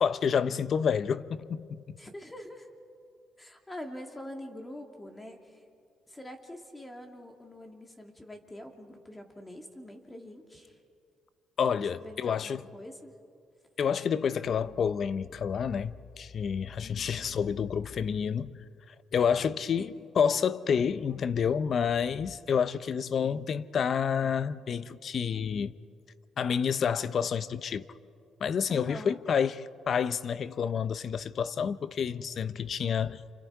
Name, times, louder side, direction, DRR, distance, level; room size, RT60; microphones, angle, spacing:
voice 1, 0.0-1.8 11.6-12.6 13.8-18.6 19.1-25.7 26.4-27.8 28.4-29.6 29.9-33.2, left 7 dB, 55° left, 0.7 m, -29 dB
voice 2, 2.0-2.7 3.4-5.6 6.1-10.8 11.9-13.1 16.8-17.2 19.2-19.3 19.8-19.9 28.7-29.2, left 1 dB, 15° left, 2.7 m, -45 dB
29.0 x 28.5 x 4.8 m
cardioid pair, 90°, 0 cm